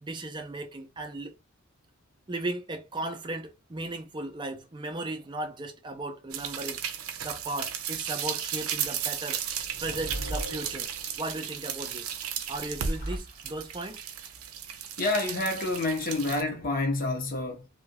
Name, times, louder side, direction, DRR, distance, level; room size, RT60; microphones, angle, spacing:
voice 1, 0.0-1.3 2.3-6.8 7.2-9.4 9.8-10.9 11.2-12.1 12.5-14.1, right 2 dB, 20° right, 0.5 m, -36 dB
sound 1, 6.3-16.4, right 8 dB, 85° right, 0.5 m, -35 dB
sound 2, 9.4-11.4 12.4-13.9, right 1 dB, 70° left, 1.6 m, -39 dB
voice 2, 15.0-17.7, left 2 dB, 40° left, 0.9 m, -28 dB
2.8 x 2.3 x 2.9 m
head